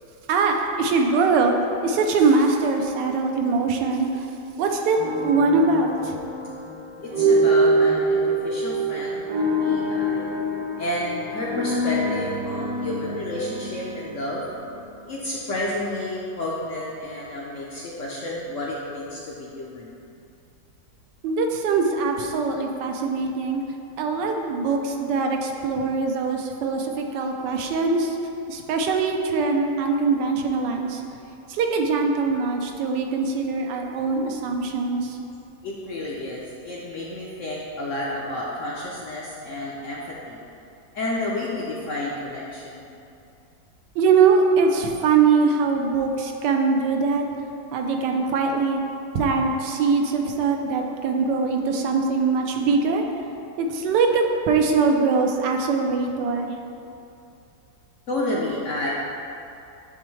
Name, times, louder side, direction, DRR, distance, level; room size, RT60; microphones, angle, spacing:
voice 1, 0.3-1.5 1.8-4.3 4.6-6.2 21.2-23.6 24.0-28.2 28.5-31.0 31.5-35.2 44.0-47.2 47.7-48.8 49.1-53.0 53.6-56.5, right 4 dB, 80° right, 3 dB, 1.2 m, -22 dB
sound 1, 4.9-15.0, right 1 dB, 65° right, 1.2 m, -25 dB
voice 2, 7.0-10.3 10.8-14.4 15.0-20.0 35.6-40.4 40.9-42.9 58.1-58.9, left 1 dB, 65° left, -4 dB, 0.8 m, -31 dB
9.3 x 3.5 x 3.1 m, 2.6 s
omnidirectional pair, 1.9 m